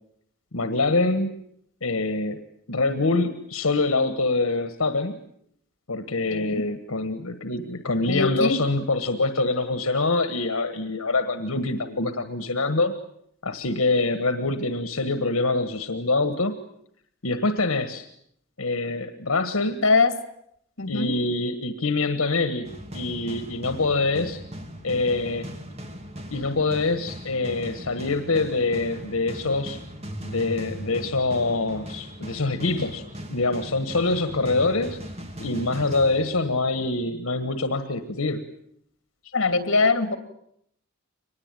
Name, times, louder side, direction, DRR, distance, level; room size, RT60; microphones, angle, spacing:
voice 1, 0.5-1.3 1.8-5.2 5.9-12.9 13.4-16.5 17.2-18.1 18.6-19.8 20.9-24.4 24.8-25.5 26.3-29.8 30.2-33.0 33.3-35.0 35.4-38.5, left 3 dB, 85° left, 9 dB, 1.5 m, -25 dB
voice 2, 6.3-6.6 8.1-8.6 19.8-20.1 20.8-21.1 39.3-40.2, left 3 dB, 60° left, 9 dB, 2.7 m, -21 dB
sound 1, 22.6-36.8, equal, 30° right, 2.2 m, -38 dB
24.0 x 20.0 x 9.2 m, 0.73 s
head